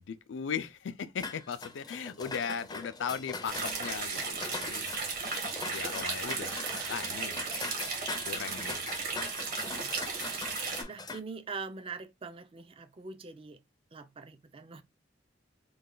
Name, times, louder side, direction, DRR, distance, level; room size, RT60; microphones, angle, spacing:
voice 1, 0.0-4.8 5.6-6.6 6.9-7.5 8.2-9.2, left 7 dB, 75° left, 0.4 m, -38 dB
sound 1, 1.2-11.2, left 3 dB, 20° left, 0.5 m, -42 dB
sound 2, 3.5-10.8, right 4 dB, 50° right, 1.1 m, -35 dB
sound 3, 5.5-7.1, right 7 dB, 90° right, 0.6 m, -47 dB
voice 2, 10.3-13.6 13.9-14.8, right 4 dB, 30° right, 0.4 m, -44 dB
3.1 x 2.3 x 3.8 m
head